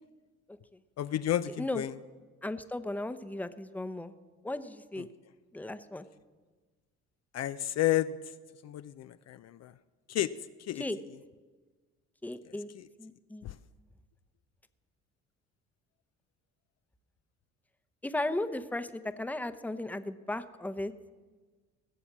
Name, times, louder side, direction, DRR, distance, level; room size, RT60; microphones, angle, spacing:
voice 1, 1.0-1.9 5.0-5.1 7.3-8.3 8.6-9.7 10.1-10.3 10.6-10.8 12.5-12.9 13.4-13.6, left 13 dB, 50° left, 12 dB, 0.5 m, -32 dB
voice 2, 2.4-4.1 4.4-5.1 5.5-6.1 10.8-11.0 12.2-12.7 13.0-13.5 18.0-18.9 19.2-20.9, left 1 dB, 5° left, 11 dB, 0.8 m, -35 dB
18.0 x 7.0 x 7.3 m, 1.4 s
supercardioid pair, 70°, 32 cm